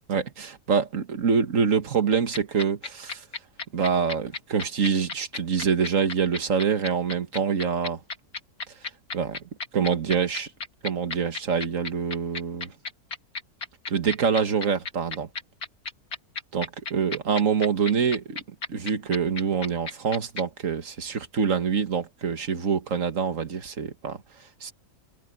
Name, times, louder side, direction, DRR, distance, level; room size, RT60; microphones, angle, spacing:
voice 1, 0.1-3.2 3.7-8.0 8.7-8.8 9.1-9.4 9.7-10.5 10.8-12.7 13.9-15.3 16.5-18.4 18.7-24.7, right 6 dB, 55° right, 1.9 m, -25 dB
sound 1, 2.1-20.4, left 4 dB, 70° left, 3.1 m, -33 dB
omnidirectional pair, 1.6 m